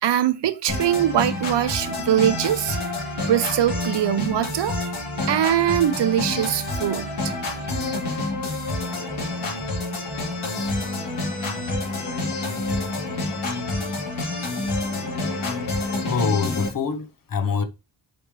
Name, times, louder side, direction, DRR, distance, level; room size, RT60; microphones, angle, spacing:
voice 1, 0.0-2.8 3.3-4.8 5.3-7.3, right 11 dB, 65° right, 0.7 m, -22 dB
sound 1, 0.7-16.7, left 2 dB, 85° left, 3.3 m, -28 dB
voice 2, 16.1-17.6, left 5 dB, 45° left, 0.9 m, -24 dB
6.7 x 5.1 x 3.1 m
wide cardioid pair, 130°, 47 cm